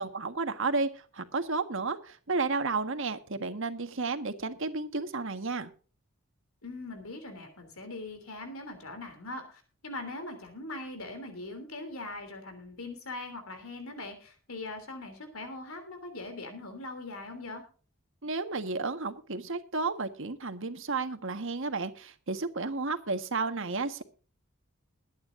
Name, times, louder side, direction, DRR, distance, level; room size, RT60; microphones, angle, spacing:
voice 1, 0.0-5.7 18.2-24.0, right 3 dB, 65° right, 8 dB, 1.6 m, -32 dB
voice 2, 6.6-17.6, left 2 dB, 80° left, 7 dB, 3.3 m, -41 dB
21.5 x 9.6 x 2.7 m, 0.38 s
head